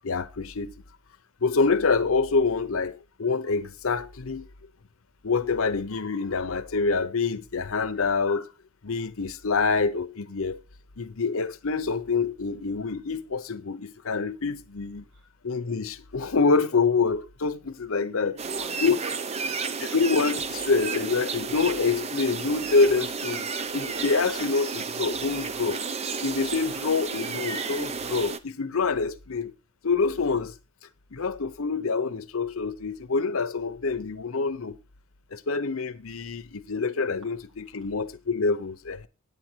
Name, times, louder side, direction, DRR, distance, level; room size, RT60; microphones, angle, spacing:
voice 1, 0.0-0.7 1.4-4.5 5.2-8.5 8.8-10.6 11.0-15.0 15.4-18.3 18.8-18.9 19.9-23.5 23.7-25.8 26.2-29.5 29.8-30.5 31.1-34.8 35.3-39.1, left 4 dB, 70° left, 0.8 m, -26 dB
voice 2, 18.1-19.8 37.6-37.9, right 3 dB, 70° right, 3.3 m, -45 dB
sound 1, 18.4-28.4, right 5 dB, 30° right, 0.5 m, -32 dB
9.6 x 8.0 x 4.5 m
head